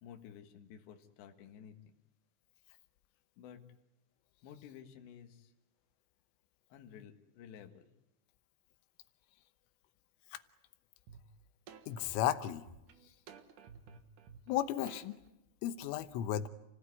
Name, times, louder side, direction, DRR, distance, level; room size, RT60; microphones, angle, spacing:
voice 1, 0.0-1.8 3.4-3.6 4.4-5.5 6.7-7.9, left 8 dB, 70° left, 4 dB, 3.7 m, -53 dB
sound 1, 11.1-11.2 11.7-15.3, right 6 dB, 65° right, 2.1 m, -54 dB
voice 2, 11.9-12.6 14.5-15.2 15.6-16.5, left 11 dB, 90° left, 11 dB, 3.7 m, -34 dB
30.0 x 17.0 x 9.7 m, 0.95 s
omnidirectional pair, 5.6 m